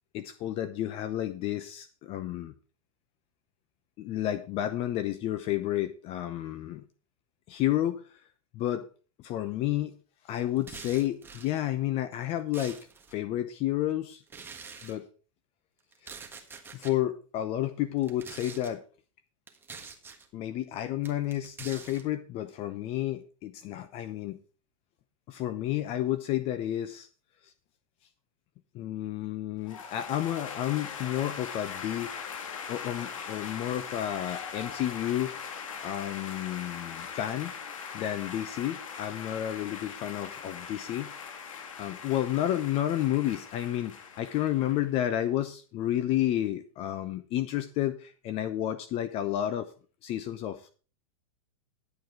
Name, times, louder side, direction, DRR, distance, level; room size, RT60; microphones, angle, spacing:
voice 1, 0.1-2.5 4.0-6.8 7.5-8.0 8.5-8.9 9.2-10.0 10.3-12.8 13.1-14.2 14.8-15.1 16.7-18.8 20.3-24.4 25.3-27.1 28.7-32.1 32.7-35.4 35.8-37.5 37.9-41.1 41.8-49.7 50.0-50.7, left 13 dB, 35° left, 12 dB, 0.8 m, -31 dB
sound 1, 10.6-11.5 12.1-13.2 14.3-14.9 15.9-16.9 18.0-18.7 19.5-20.3 21.0-22.0, right 5 dB, 15° right, 1.5 m, -45 dB
enthusiastic applause, 29.7-45.2, left 6 dB, 85° left, 2.2 m, -41 dB
11.0 x 7.9 x 4.7 m, 0.37 s
hypercardioid pair, 130°, 17 cm